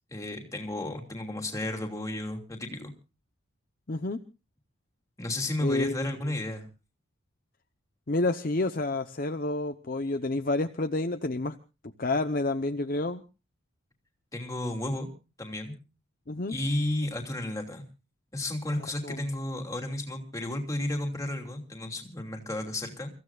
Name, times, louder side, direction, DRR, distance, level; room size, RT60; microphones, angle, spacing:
voice 1, 0.1-2.9 5.2-6.7 14.3-15.1 15.4-15.7 16.5-17.8 18.3-23.1, left 1 dB, 15° left, 2 dB, 2.8 m, -33 dB
voice 2, 3.9-4.2 5.6-6.1 8.1-11.6 11.8-13.2 16.3-16.6 18.8-19.2, left 2 dB, 45° left, 7 dB, 0.8 m, -29 dB
29.5 x 15.5 x 2.4 m, 0.33 s
head